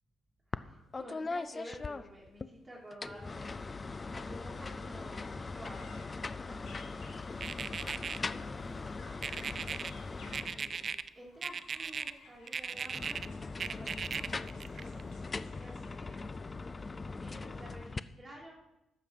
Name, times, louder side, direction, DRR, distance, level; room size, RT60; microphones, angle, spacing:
sound 1, 0.5-0.7 0.9-2.5 2.9-11.0 12.7-18.0, left 3 dB, 30° left, 0.4 m, -40 dB
voice 1, 0.5-3.7 4.1-7.2 7.5-10.0 10.3-16.4 17.0-18.5, equal, 10° right, -7 dB, 2.8 m, -52 dB
sound 2, 4.6-4.7 5.0-10.9 11.3-16.1, left 3 dB, 75° left, 2.7 m, -58 dB
sound 3, 7.4-8.2 9.2-9.9 10.3-11.1 11.4-12.1 12.5-13.3 13.6-15.0, right 6 dB, 45° right, 0.4 m, -37 dB
12.0 x 7.7 x 4.8 m, 0.94 s
cardioid pair, 90°, 0 cm